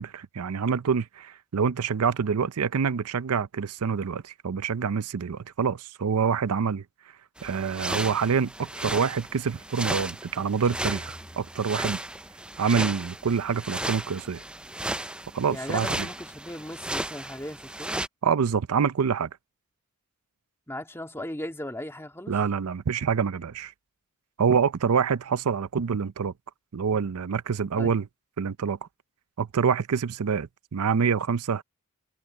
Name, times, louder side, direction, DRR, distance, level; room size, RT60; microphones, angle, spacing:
voice 1, 0.0-6.8 7.4-12.0 12.6-14.4 15.3-16.1 18.2-19.3 22.3-23.7 24.4-26.3 26.7-28.1 28.4-28.8 29.4-31.6, right 6 dB, 80° right, 0.5 m, -26 dB
sound 1, 7.4-18.1, right 1 dB, 5° right, 0.4 m, -35 dB
sound 2, 10.6-12.5, left 1 dB, 30° left, 2.6 m, -48 dB
voice 2, 15.5-18.0 20.7-22.3 27.8-27.9, left 1 dB, 10° left, 2.4 m, -37 dB
head